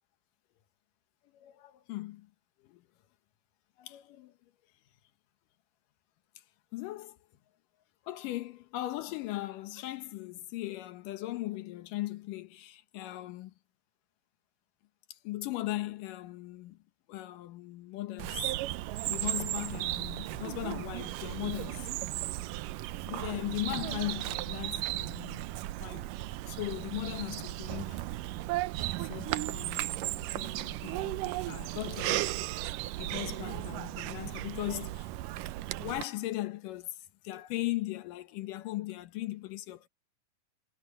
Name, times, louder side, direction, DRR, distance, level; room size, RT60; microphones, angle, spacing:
voice 1, 1.3-2.3 2.6-2.8 3.8-4.3 6.7-7.2 8.1-13.5 15.1-16.8 17.1-18.5 19.1-21.9 23.1-25.5 25.8-26.1 26.5-28.0 29.0-32.3 33.0-35.1 35.8-37.0 37.2-39.9, left 16 dB, 85° left, 2.7 m, -38 dB
Bird vocalization bird call bird song, 18.2-36.0, right 16 dB, 85° right, 2.3 m, -35 dB
omnidirectional pair, 3.7 m